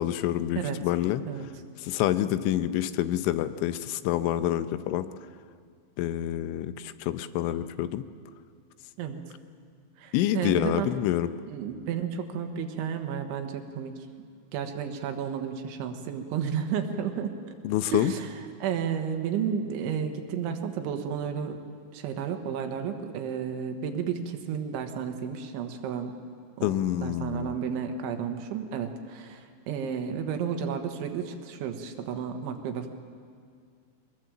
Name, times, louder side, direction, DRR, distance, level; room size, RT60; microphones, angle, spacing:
voice 1, 0.0-1.2 1.8-5.1 6.0-8.0 10.1-11.3 17.6-18.1 26.6-27.6, left 12 dB, 85° left, 12 dB, 3.2 m, -27 dB
voice 2, 10.0-10.9 11.5-14.0 14.5-17.3 17.9-18.3 18.6-21.6 21.9-26.1 26.6-26.7 27.0-32.9, right 7 dB, 85° right, 5 dB, 3.7 m, -32 dB
23.0 x 20.0 x 7.7 m, 2.1 s
omnidirectional pair, 5.4 m